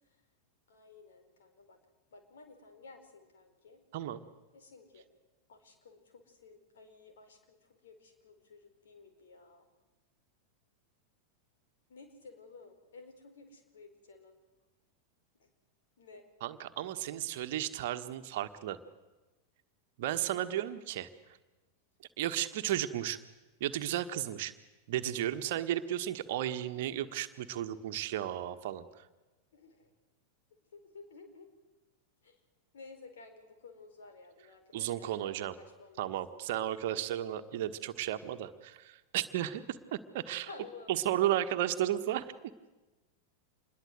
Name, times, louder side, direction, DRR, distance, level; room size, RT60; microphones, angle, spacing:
voice 1, 0.7-1.8 2.1-3.8 4.5-5.1 5.5-9.7 11.9-14.3 16.0-16.2 20.4-20.7 22.4-22.5 29.5-29.9 30.7-31.5 32.2-32.4 32.7-36.2 40.5-41.4, left 4 dB, 60° left, 6 dB, 4.6 m, -54 dB
voice 2, 16.4-18.8 20.0-21.1 22.2-23.2 23.6-24.5 24.9-28.8 34.7-35.6 36.0-39.6 39.9-40.5 40.9-42.3, right 12 dB, 50° right, 8 dB, 1.4 m, -34 dB
27.0 x 21.5 x 7.9 m, 1.1 s
figure-of-eight pair, 90°, 0 cm